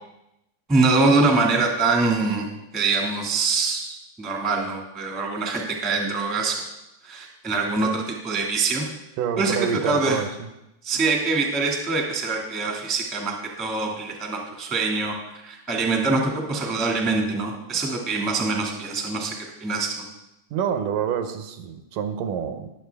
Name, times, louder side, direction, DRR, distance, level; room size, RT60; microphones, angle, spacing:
voice 1, 0.7-2.5 2.7-6.6 7.0-8.8 9.4-9.6 9.8-10.2 10.8-15.1 15.4-19.3 19.6-20.0, right 3 dB, ahead, -1 dB, 0.9 m, -24 dB
voice 2, 9.2-10.3 20.5-22.7, right 7 dB, 75° right, 8 dB, 2.3 m, -27 dB
20.5 x 7.4 x 3.5 m, 0.90 s
omnidirectional pair, 3.8 m